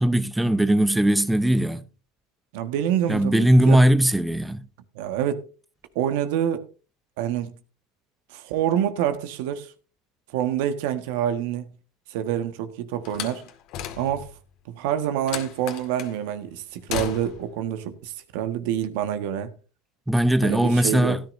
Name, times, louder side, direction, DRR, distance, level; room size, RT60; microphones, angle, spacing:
voice 1, 0.0-1.8 3.1-4.6 20.1-21.2, right 1 dB, 5° right, 0.7 m, -19 dB
voice 2, 2.5-3.8 4.9-5.4 5.9-6.7 7.2-7.5 8.3-9.7 10.3-11.7 12.1-13.4 14.0-14.3 14.7-19.5 20.4-21.2, right 10 dB, 70° right, 1.5 m, -27 dB
Slam, 13.0-14.4 15.3-16.2 16.9-17.5, left 10 dB, 55° left, 2.0 m, -34 dB
16.5 x 10.5 x 2.7 m
hypercardioid pair, 100°, 0 cm